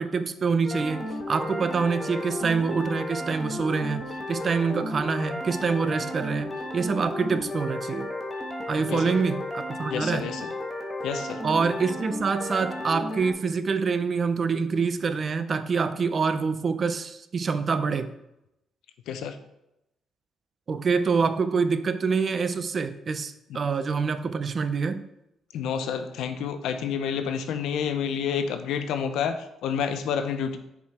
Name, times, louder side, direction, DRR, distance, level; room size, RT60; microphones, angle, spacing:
voice 1, 0.0-4.0 4.3-8.1 8.7-10.3 11.4-18.1 20.7-25.0, right 5 dB, 45° right, 11 dB, 0.6 m, -26 dB
sound 1, 0.6-13.3, left 1 dB, 10° left, 1.4 m, -33 dB
voice 2, 8.9-9.2 9.9-10.5 11.0-11.4 19.1-19.4 23.5-23.6 25.5-30.6, left 7 dB, 85° left, 9 dB, 0.7 m, -29 dB
7.4 x 4.9 x 4.3 m, 0.85 s
cardioid pair, 90°, 0 cm